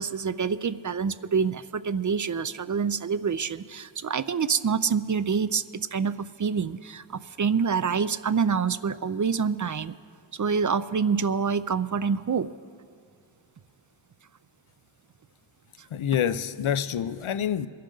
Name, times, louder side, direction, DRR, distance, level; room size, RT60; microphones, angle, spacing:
voice 1, 0.0-5.6 5.9-10.0 10.3-12.5 15.8-15.9, right 6 dB, 40° right, 0.4 m, -26 dB
voice 2, 15.9-17.7, left 9 dB, 90° left, 0.6 m, -27 dB
22.5 x 11.0 x 3.8 m
wide cardioid pair, 65°, 47 cm